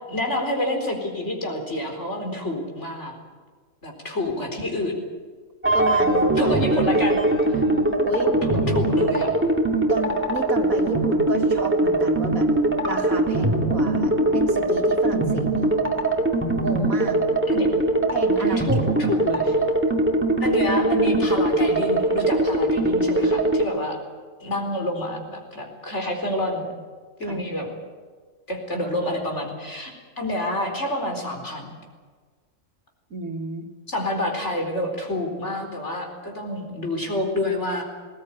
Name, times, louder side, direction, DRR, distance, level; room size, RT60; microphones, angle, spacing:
voice 1, 0.1-3.1 3.8-5.0 6.4-7.2 7.5-7.6 8.2-9.3 17.5-17.7 18.4-19.6 20.4-24.0 24.4-26.7 27.2-27.7 28.5-31.7 33.9-37.8, left 1 dB, 55° left, 2 dB, 4.6 m, -28 dB
sound 1, 5.6-23.6, right 2 dB, 10° right, 2.1 m, -21 dB
voice 2, 5.7-6.6 8.0-8.3 9.9-12.5 12.8-15.7 16.6-17.2 18.1-18.8 27.2-27.4 33.1-33.7, right 2 dB, 85° right, 4 dB, 2.5 m, -31 dB
20.0 x 18.5 x 9.2 m, 1.5 s
omnidirectional pair, 1.4 m